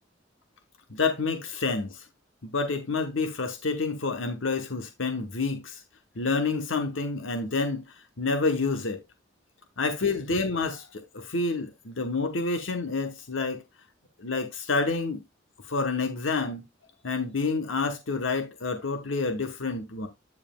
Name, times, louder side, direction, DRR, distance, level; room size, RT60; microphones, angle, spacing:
voice 1, 0.9-2.0 2.4-5.8 6.2-7.8 8.2-9.0 9.8-13.6 14.2-15.2 15.6-16.7 17.0-20.1, left 3 dB, 85° left, 1.0 m, -28 dB
9.6 x 7.2 x 2.3 m
head